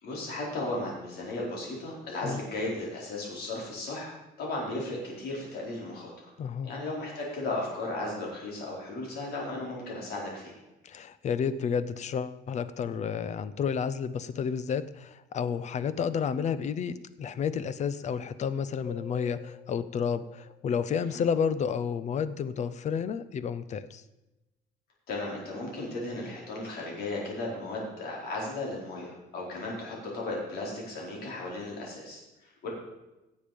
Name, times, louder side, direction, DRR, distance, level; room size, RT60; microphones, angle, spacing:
voice 1, 0.0-6.1 6.6-10.6 21.0-21.2 25.1-32.7, left 2 dB, 70° left, -3 dB, 4.7 m, -35 dB
voice 2, 6.4-6.7 10.8-24.0, left 7 dB, 45° left, 14 dB, 0.6 m, -31 dB
sound 1, 18.9-22.1, left 5 dB, 20° left, 4.8 m, -50 dB
17.0 x 7.3 x 5.2 m, 1.0 s
cardioid pair, 160°, 17 cm